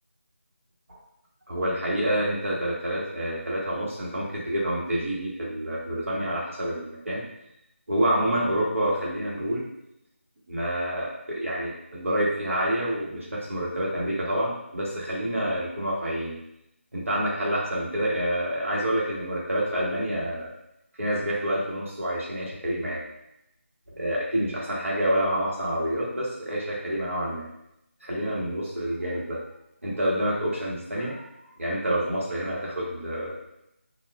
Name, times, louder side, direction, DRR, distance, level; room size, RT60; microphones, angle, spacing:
voice 1, 1.5-7.2 7.9-9.7 10.5-16.3 16.9-20.5 21.0-23.0 23.9-27.4 28.0-29.4 29.8-31.2 31.6-33.4, equal, 75° right, -4 dB, 1.0 m, -28 dB
3.3 x 2.3 x 2.3 m, 0.82 s
figure-of-eight pair, 175°, 7 cm